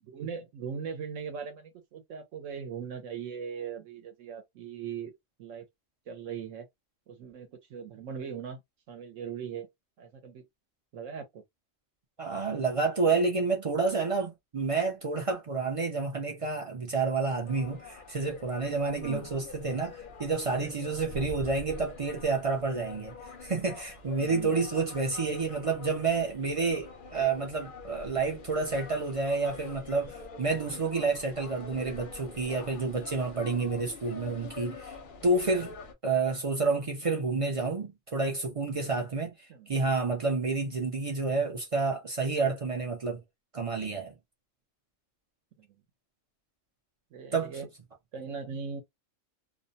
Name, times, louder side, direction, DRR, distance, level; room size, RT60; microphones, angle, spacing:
voice 1, 0.0-5.1 5.4-5.7 6.1-6.7 7.1-8.6 8.9-9.7 10.0-10.5 10.9-11.4 19.0-19.3 24.2-24.5 35.6-35.7 39.5-39.7 45.6-45.7 47.1-47.7 48.1-48.8, right 6 dB, 75° right, 0.9 m, -39 dB
voice 2, 12.2-35.0 35.2-35.7 36.0-39.3 39.7-43.2 43.5-44.1 47.3-47.5, right 4 dB, 55° right, 0.3 m, -29 dB
sound 1, 17.4-35.9, left 4 dB, 50° left, 0.7 m, -45 dB
2.5 x 2.1 x 2.6 m
omnidirectional pair, 1.4 m